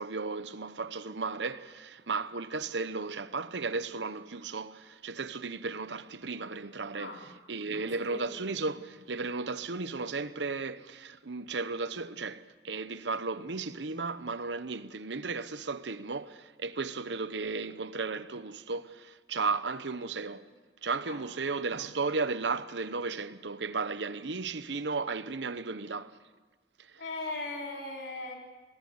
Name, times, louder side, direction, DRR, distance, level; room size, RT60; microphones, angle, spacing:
voice 1, 0.0-7.2 7.5-20.5 20.8-26.1 26.8-27.0, right 4 dB, 75° right, 0.9 m, -35 dB
voice 2, 6.9-7.2 7.7-8.4 21.1-21.2 27.0-28.4, left 2 dB, 70° left, 3.9 m, -39 dB
23.0 x 18.0 x 8.1 m
head